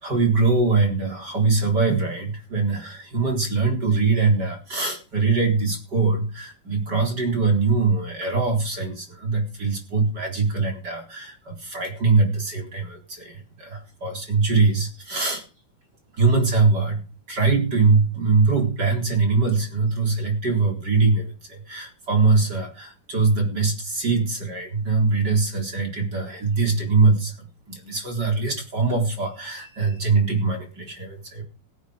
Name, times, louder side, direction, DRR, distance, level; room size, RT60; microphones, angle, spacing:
voice 1, 0.0-15.4 16.2-17.0 17.3-31.4, right 4 dB, 25° right, 4 dB, 4.1 m, -22 dB
16.5 x 10.5 x 5.2 m, 0.32 s
omnidirectional pair, 4.9 m